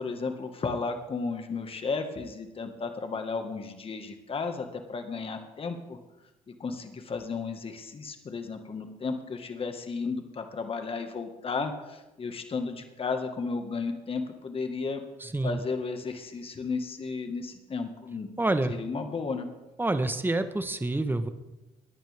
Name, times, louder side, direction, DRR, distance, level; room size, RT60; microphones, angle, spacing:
voice 1, 0.0-6.0 6.5-15.0 15.4-18.3 18.7-19.5, left 4 dB, 40° left, 6 dB, 1.7 m, -34 dB
voice 2, 15.2-15.6 18.4-18.7 19.8-21.3, right 2 dB, 15° right, 9 dB, 1.2 m, -27 dB
18.0 x 10.5 x 3.5 m, 1.0 s
cardioid pair, 80°, 15 cm